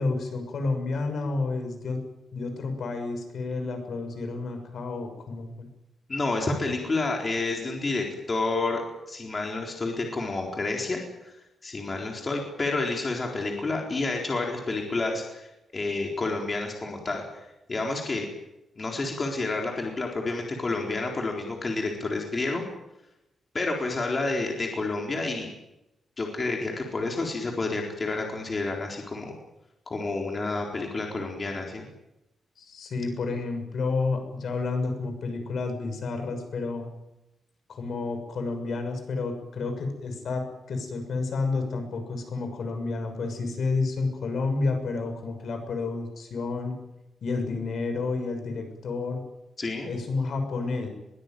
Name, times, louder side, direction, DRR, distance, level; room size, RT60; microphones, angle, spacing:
voice 1, 0.0-2.0 2.3-5.7 32.6-36.9 37.7-46.7 47.2-49.2 49.8-50.9, left 3 dB, 65° left, 6 dB, 6.4 m, -30 dB
voice 2, 6.1-8.8 9.1-11.3 11.6-18.3 18.8-22.6 23.5-25.5 26.2-29.3 29.9-31.9 49.6-49.9, left 3 dB, 30° left, 0 dB, 4.1 m, -29 dB
22.0 x 20.5 x 9.3 m, 0.93 s
wide cardioid pair, 135°, 0 cm